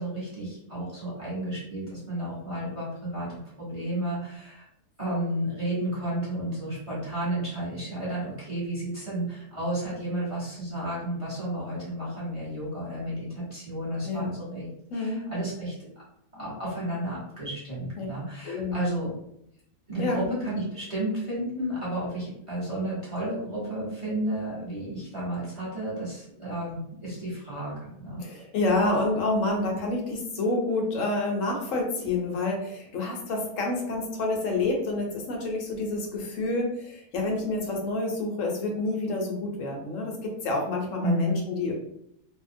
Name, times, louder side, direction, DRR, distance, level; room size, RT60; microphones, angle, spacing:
voice 1, 0.0-4.6 5.0-14.6 14.9-15.9 16.3-19.1 19.9-28.2 41.0-41.4, right 1 dB, 25° right, -9 dB, 0.9 m, -32 dB
voice 2, 14.0-14.4 14.9-15.2 18.0-18.1 18.4-18.8 20.0-20.3 28.2-41.7, left 2 dB, 65° left, 0 dB, 0.9 m, -28 dB
2.7 x 2.0 x 2.5 m, 0.75 s
omnidirectional pair, 1.6 m